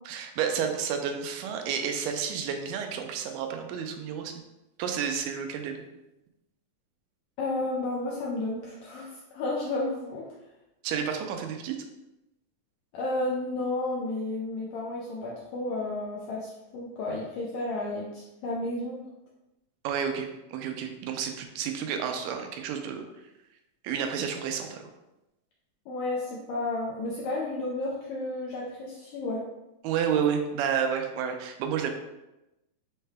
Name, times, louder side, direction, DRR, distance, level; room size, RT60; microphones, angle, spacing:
voice 1, 0.1-4.3 4.8-5.8 10.8-11.8 19.8-23.0 23.8-24.8 29.8-31.9, right 7 dB, 85° right, 4 dB, 2.2 m, -30 dB
voice 2, 7.4-10.2 12.9-19.0 25.9-29.4, left 2 dB, 80° left, -4 dB, 1.6 m, -32 dB
6.3 x 2.2 x 3.3 m, 0.95 s
omnidirectional pair, 3.8 m